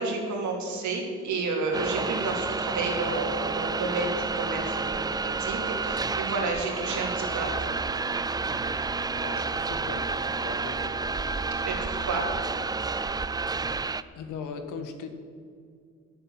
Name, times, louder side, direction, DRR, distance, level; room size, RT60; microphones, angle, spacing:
voice 1, 0.0-7.5 11.6-12.3, right 3 dB, 70° right, 0 dB, 2.9 m, -31 dB
sound 1, 1.7-14.0, right 4 dB, 15° right, 0.3 m, -30 dB
voice 2, 9.1-10.9 14.1-15.1, left 5 dB, 90° left, 7 dB, 1.5 m, -39 dB
10.0 x 8.4 x 7.4 m, 2.2 s
cardioid pair, 90°, 30 cm